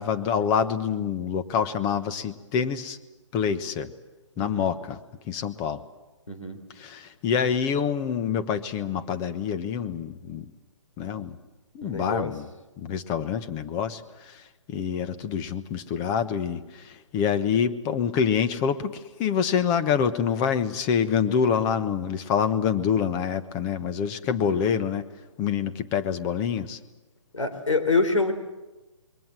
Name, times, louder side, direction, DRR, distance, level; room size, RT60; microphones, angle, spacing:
voice 1, 0.0-3.0 3.3-3.9 4.4-5.0 5.3-5.8 6.8-10.4 11.0-11.4 11.7-12.5 12.8-14.4 14.7-25.0 25.4-26.8, left 7 dB, 20° left, 10 dB, 1.2 m, -26 dB
voice 2, 6.3-6.6 11.8-12.3 24.3-24.7 27.3-28.3, left 3 dB, 80° left, 6 dB, 3.6 m, -26 dB
27.5 x 22.5 x 7.7 m, 1.1 s
figure-of-eight pair, 135°, 16 cm